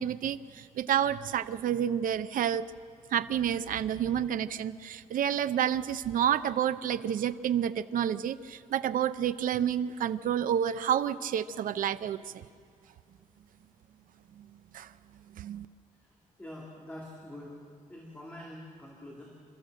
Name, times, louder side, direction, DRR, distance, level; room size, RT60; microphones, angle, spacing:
voice 1, 0.0-2.7 3.1-12.4 14.4-14.5 14.7-14.9 15.3-15.7, right 9 dB, 90° right, 13 dB, 0.6 m, -29 dB
voice 2, 16.0-17.6 17.9-19.2, left 1 dB, 10° left, -3 dB, 2.4 m, -45 dB
27.0 x 13.5 x 7.6 m, 2.3 s
wide cardioid pair, 175°, 14 cm